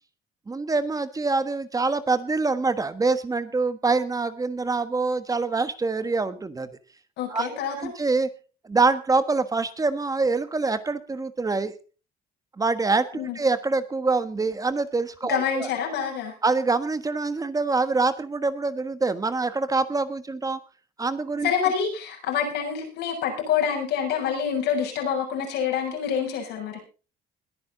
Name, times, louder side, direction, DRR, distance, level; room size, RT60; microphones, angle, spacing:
voice 1, 0.5-6.7 7.3-7.5 7.8-8.3 8.6-11.7 12.6-15.7 16.4-20.6 21.0-21.5, right 3 dB, 20° right, 11 dB, 1.3 m, -25 dB
voice 2, 7.2-7.8 13.1-13.4 15.3-16.3 21.4-26.8, left 7 dB, 85° left, 2 dB, 7.0 m, -27 dB
21.0 x 9.5 x 4.0 m, 0.36 s
cardioid pair, 110°, 17 cm